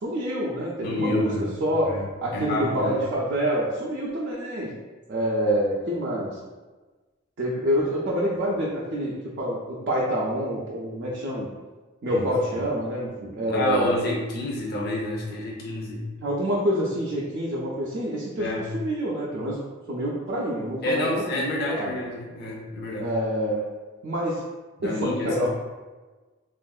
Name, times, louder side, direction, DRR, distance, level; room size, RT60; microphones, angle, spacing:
voice 1, 0.0-1.3 1.6-1.9 2.2-4.7 5.1-6.4 7.4-11.5 12.0-13.9 16.2-19.6 19.9-21.9 23.0-23.7 24.0-24.4 24.8-25.5, equal, 50° right, -5 dB, 0.4 m, -27 dB
voice 2, 0.8-3.0 12.1-12.3 12.5-12.6 13.5-16.1 18.4-18.6 20.8-23.1 24.8-25.5, left 1 dB, 50° left, -2 dB, 0.5 m, -29 dB
3.5 x 2.4 x 2.3 m, 1.3 s
head